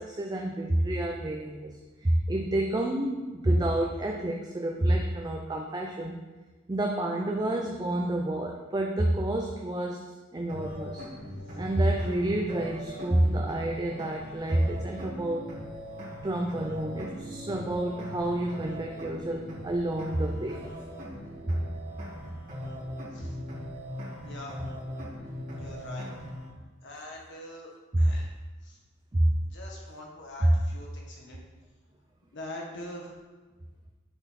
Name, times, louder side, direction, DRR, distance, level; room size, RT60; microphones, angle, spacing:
voice 1, 0.0-6.2 6.7-10.0 10.3-11.0 11.6-15.5 16.2-20.6 21.5-21.6 27.9-28.1 29.1-29.3 30.4-30.5, right 1 dB, 20° right, 1 dB, 0.5 m, -28 dB
sound 1, 10.5-26.5, equal, 45° right, 2.3 m, -40 dB
voice 2, 24.2-24.6 25.6-26.1 26.8-27.7 28.0-28.3 28.6-28.8 29.5-31.4 32.3-33.1, left 1 dB, 60° left, -2 dB, 1.6 m, -43 dB
8.7 x 4.2 x 4.2 m, 1.3 s
head